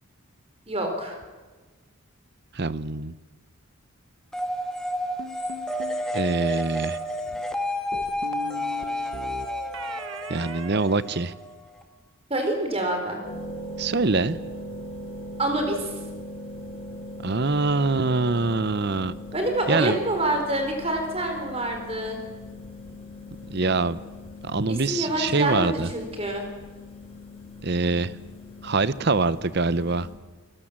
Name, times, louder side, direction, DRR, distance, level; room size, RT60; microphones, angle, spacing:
voice 1, 0.7-1.2 12.3-13.2 15.4-15.9 19.3-22.2 24.7-26.5, right 1 dB, 25° right, 4 dB, 4.5 m, -26 dB
voice 2, 2.5-3.1 6.1-7.0 10.3-11.3 13.8-14.4 17.2-19.1 19.7-20.0 23.5-24.0 24.4-25.9 27.6-28.1 28.6-30.1, right 3 dB, 50° right, 16 dB, 0.8 m, -24 dB
sound 1, 4.3-11.8, equal, 5° left, 1.7 m, -31 dB
sound 2, 5.2-6.0 7.9-11.7, right 1 dB, 70° right, 1.6 m, -39 dB
sound 3, 13.2-30.1, left 1 dB, 25° left, 7.1 m, -40 dB
29.0 x 20.5 x 7.5 m, 1.3 s
head